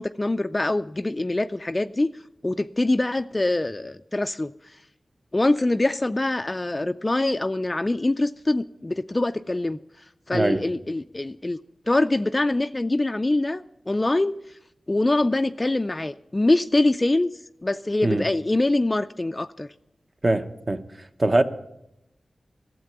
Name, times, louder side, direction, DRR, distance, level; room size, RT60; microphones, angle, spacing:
voice 1, 0.0-2.1 2.4-4.5 5.3-9.8 10.3-11.6 11.9-14.3 14.9-19.7, left 2 dB, 30° left, 0.4 m, -24 dB
voice 2, 10.3-10.6 18.0-18.3 20.2-21.4, right 2 dB, 40° right, 0.9 m, -23 dB
12.5 x 7.5 x 9.0 m
cardioid pair, 50°, 0 cm